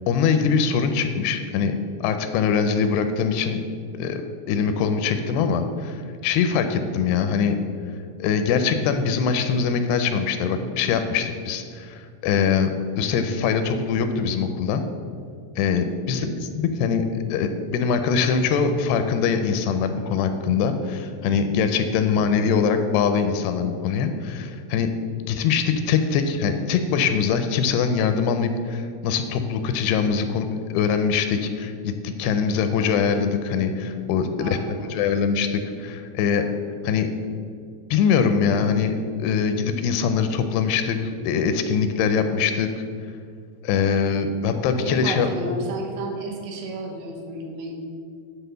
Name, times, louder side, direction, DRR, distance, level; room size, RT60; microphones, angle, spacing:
voice 1, 0.1-3.6 4.0-4.2 4.5-7.6 8.2-12.7 13.0-14.8 15.6-24.9 25.3-36.5 36.8-37.1 37.9-42.7 43.6-45.3, left 6 dB, 85° left, 8 dB, 2.5 m, -23 dB
voice 2, 34.4-34.9 44.8-47.7, right 2 dB, 80° right, 0 dB, 3.1 m, -32 dB
10.0 x 4.0 x 6.7 m, 2.2 s
omnidirectional pair, 4.9 m